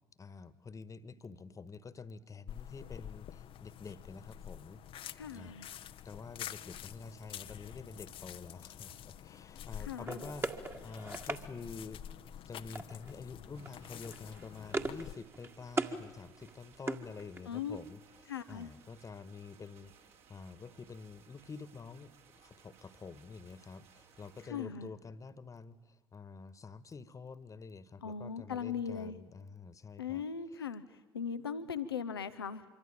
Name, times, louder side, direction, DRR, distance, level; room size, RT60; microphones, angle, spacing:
voice 1, 0.2-4.8 5.3-5.6 6.0-12.0 12.5-18.0 18.5-30.2 30.5-30.6, left 4 dB, 25° left, 16 dB, 1.6 m, -48 dB
sound 1, 2.5-15.1, left 10 dB, 45° left, 0.9 m, -48 dB
voice 2, 5.1-5.7 9.8-10.3 17.5-17.8 18.3-18.7 24.5-24.9 28.0-29.2 30.0-32.6, left 7 dB, 85° left, 11 dB, 0.9 m, -39 dB
sound 2, 10.0-11.4 12.7-13.2 13.4-13.7 14.0-15.1 15.3-16.0 16.4-17.6, right 3 dB, 20° right, 1.9 m, -38 dB
sound 3, 13.5-24.5, right 7 dB, 55° right, 3.3 m, -62 dB
25.5 x 24.0 x 9.1 m, 1.2 s
figure-of-eight pair, 60°, 12 cm